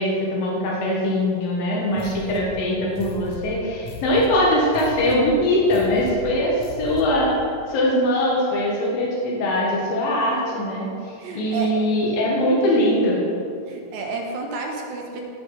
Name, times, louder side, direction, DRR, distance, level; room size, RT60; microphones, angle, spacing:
voice 1, 0.0-7.3 7.7-13.2, left 1 dB, 90° left, -4 dB, 3.5 m, -21 dB
sound 1, 1.9-7.3, left 2 dB, 55° left, 1.9 m, -37 dB
voice 2, 11.2-11.7 13.7-15.2, right 3 dB, 85° right, 1 dB, 3.1 m, -31 dB
17.0 x 5.9 x 5.8 m, 2.5 s
omnidirectional pair, 4.0 m